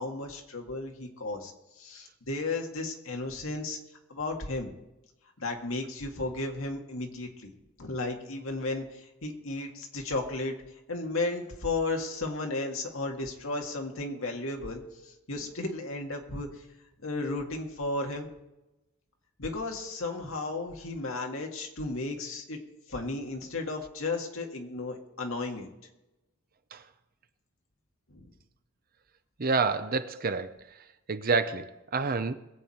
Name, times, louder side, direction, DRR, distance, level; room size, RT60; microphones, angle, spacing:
voice 1, 0.0-3.8 4.1-4.7 5.4-7.5 7.8-10.5 10.9-16.5 17.0-18.3 19.4-22.6 22.9-25.7 28.1-28.3, left 2 dB, 65° left, 2 dB, 1.9 m, -34 dB
voice 2, 29.4-30.8 31.1-32.3, right 4 dB, 40° right, 11 dB, 0.7 m, -28 dB
21.5 x 8.2 x 4.4 m, 0.96 s
head